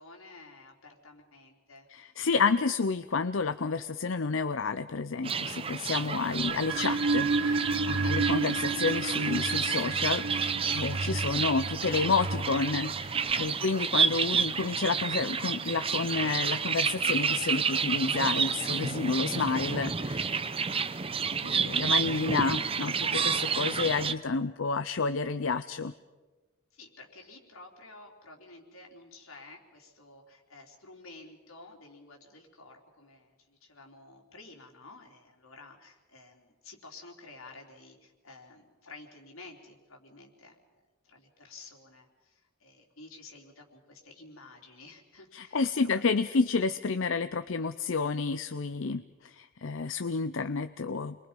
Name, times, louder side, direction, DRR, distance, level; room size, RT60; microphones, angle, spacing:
voice 1, 0.0-2.1 8.0-8.2 13.3-13.7 21.6-21.8 26.7-40.6 41.0-46.0, left 3 dB, 90° left, 1 dB, 4.0 m, -51 dB
voice 2, 1.9-20.5 21.3-25.9 45.3-51.2, left 4 dB, 65° left, 11 dB, 0.6 m, -30 dB
sound 1, 5.2-24.1, right 6 dB, 25° right, 0.7 m, -30 dB
sound 2, 6.4-13.3, right 3 dB, 85° right, 1.3 m, -31 dB
29.0 x 22.5 x 5.4 m, 1.2 s
head